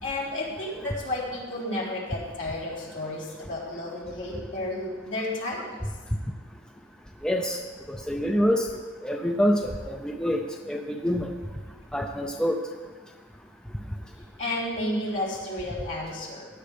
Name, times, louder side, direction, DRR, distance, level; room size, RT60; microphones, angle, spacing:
voice 1, 0.0-5.8 14.4-16.5, left 1 dB, 70° left, -7 dB, 3.8 m, -32 dB
voice 2, 7.2-7.6 7.9-8.7 9.0-10.4 10.7-11.3 11.9-12.6, equal, 5° left, 3 dB, 0.5 m, -26 dB
16.5 x 9.7 x 3.4 m, 1.4 s
head